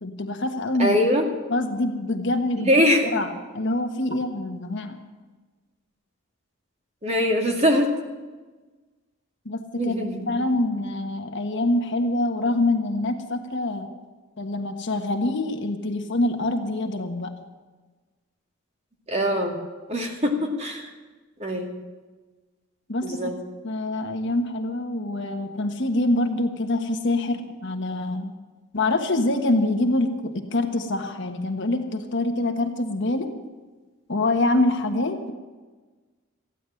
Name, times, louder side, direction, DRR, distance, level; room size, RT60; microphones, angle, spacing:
voice 1, 0.0-1.0 1.5-2.7 3.0-5.0 9.4-9.9 10.3-13.9 14.4-17.4 22.9-23.2 23.6-28.3 28.7-33.3 34.1-35.3, left 2 dB, 60° left, 5 dB, 1.4 m, -25 dB
voice 2, 0.8-1.3 2.6-3.2 7.0-7.9 9.8-10.3 19.1-19.6 19.9-20.9 21.4-21.7 23.0-23.4, equal, 30° right, 2 dB, 2.2 m, -22 dB
15.0 x 10.0 x 7.8 m, 1.3 s
head